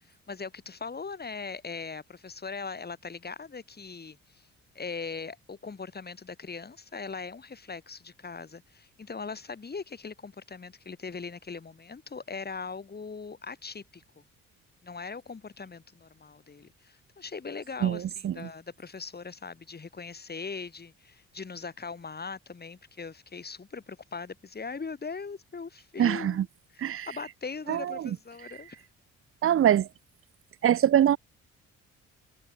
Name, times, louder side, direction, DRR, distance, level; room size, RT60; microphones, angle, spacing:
voice 1, 0.3-4.5 4.8-14.2 14.8-26.5 26.7-28.8, left 4 dB, 30° left, 6.9 m, -40 dB
voice 2, 17.8-18.5 26.0-26.4 26.8-27.1 27.7-28.1 29.4-29.9 30.6-31.2, right 10 dB, 45° right, 0.7 m, -24 dB
cardioid pair, 90°, 30 cm